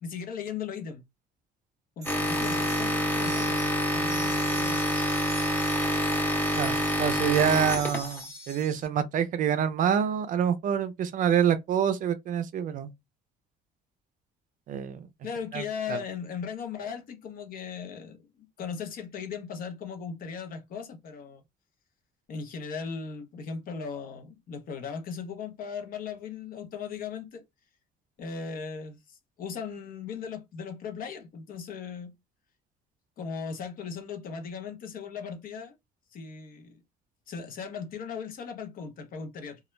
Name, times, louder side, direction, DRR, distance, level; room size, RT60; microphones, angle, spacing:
voice 1, 0.0-1.0 2.0-4.9 15.2-21.4 22.3-27.4 28.2-32.1 33.2-35.7 36.1-36.8 37.3-39.6, left 6 dB, 55° left, 0.7 m, -38 dB
sound 1, 2.0-8.9, right 2 dB, 20° right, 0.9 m, -42 dB
sound 2, 2.1-8.2, equal, 10° left, 0.5 m, -27 dB
voice 2, 6.6-12.9 14.7-15.1 15.5-15.6 15.9-16.0, right 8 dB, 50° right, 0.4 m, -26 dB
2.3 x 2.0 x 3.1 m
cardioid pair, 110°, 17 cm